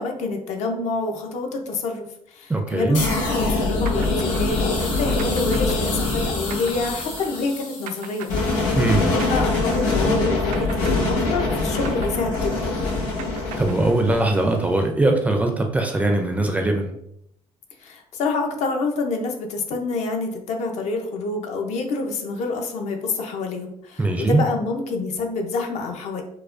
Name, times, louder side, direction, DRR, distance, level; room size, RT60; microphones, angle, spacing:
voice 1, 0.0-12.6 17.8-26.2, left 3 dB, 65° left, 3 dB, 0.6 m, -27 dB
voice 2, 2.5-3.0 8.8-9.1 13.6-16.9 24.0-24.4, right 2 dB, 10° right, 4 dB, 0.4 m, -21 dB
sound 1, 2.9-14.7, left 2 dB, 85° left, 1.2 m, -24 dB
sound 2, 3.9-10.2 10.5-14.4, right 8 dB, 85° right, 0.4 m, -40 dB
4.7 x 2.1 x 2.5 m, 0.74 s
cardioid pair, 150°, 13 cm